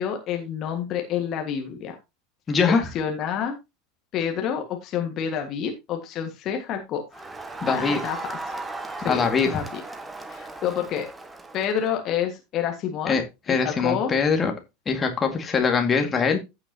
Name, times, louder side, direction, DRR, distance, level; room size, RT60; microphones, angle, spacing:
voice 1, 0.0-2.0 2.7-3.5 4.1-7.2 7.6-8.4 9.0-9.8 10.3-11.1 11.5-13.2 13.5-14.1, left 8 dB, 40° left, 1.7 m, -28 dB
voice 2, 2.5-2.9 7.6-8.0 9.0-9.5 13.1-13.2 13.5-14.5 14.9-16.4, left 5 dB, 25° left, 2.0 m, -22 dB
Crowd, 7.1-11.9, right 2 dB, 15° right, 1.2 m, -36 dB
15.0 x 5.9 x 2.9 m
figure-of-eight pair, 80°, 0 cm